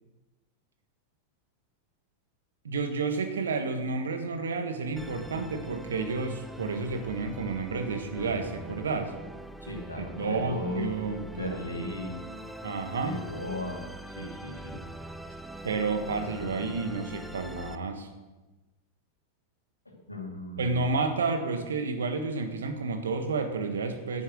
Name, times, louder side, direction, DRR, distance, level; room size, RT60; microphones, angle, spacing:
voice 1, 2.6-9.1 10.0-11.6 12.6-13.1 15.6-18.1 20.6-24.2, right 4 dB, 65° right, 6 dB, 1.5 m, -31 dB
Musical instrument, 5.0-17.8, equal, 5° right, 0.7 m, -43 dB
voice 2, 9.6-10.9 11.3-12.2 13.0-14.8 19.9-20.8, left 1 dB, 85° left, 0 dB, 2.5 m, -36 dB
11.0 x 9.5 x 6.3 m, 1.1 s
figure-of-eight pair, 90°, 0 cm